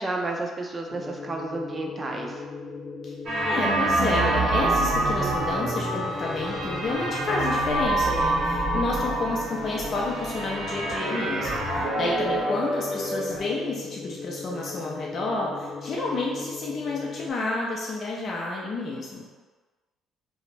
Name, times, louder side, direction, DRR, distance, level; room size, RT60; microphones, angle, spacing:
voice 1, 0.0-2.4, right 2 dB, 30° right, 1 dB, 0.4 m, -31 dB
sound 1, 0.9-17.3, left 4 dB, 35° left, 0.9 m, -38 dB
sound 2, 3.3-13.4, right 2 dB, 50° right, 0.9 m, -26 dB
voice 2, 3.5-19.2, left 2 dB, 50° left, -3 dB, 0.4 m, -30 dB
2.4 x 2.0 x 3.1 m, 1.3 s
hypercardioid pair, 55°, 0 cm